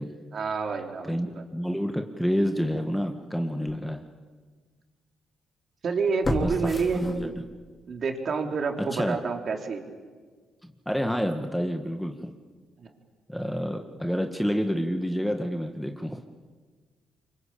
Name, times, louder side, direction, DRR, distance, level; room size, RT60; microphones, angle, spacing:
voice 1, 0.3-1.4 5.8-7.4 7.9-9.8 12.8-12.9, right 5 dB, 50° right, 3 dB, 3.9 m, -29 dB
voice 2, 1.0-4.0 6.4-6.5 7.0-7.3 8.8-9.2 10.6-12.3 13.3-16.2, equal, ahead, 5 dB, 1.9 m, -28 dB
sound 1, 3.0-3.1 3.7-3.8 6.2-7.7 8.1-8.2, left 2 dB, 20° left, 3.1 m, -32 dB
27.5 x 24.5 x 8.8 m, 1.5 s
cardioid pair, 90°, 0 cm